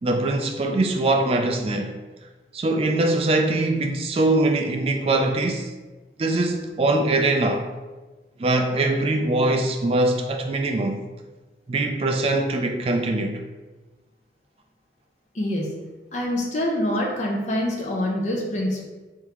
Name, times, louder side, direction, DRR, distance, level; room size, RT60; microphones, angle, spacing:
voice 1, 0.0-1.9 2.5-5.7 6.2-7.7 8.4-11.0 11.7-13.4, right 2 dB, 30° right, 0.3 m, -22 dB
voice 2, 15.3-15.8 16.1-18.8, left 1 dB, 40° left, 0.7 m, -25 dB
3.6 x 3.5 x 2.9 m
head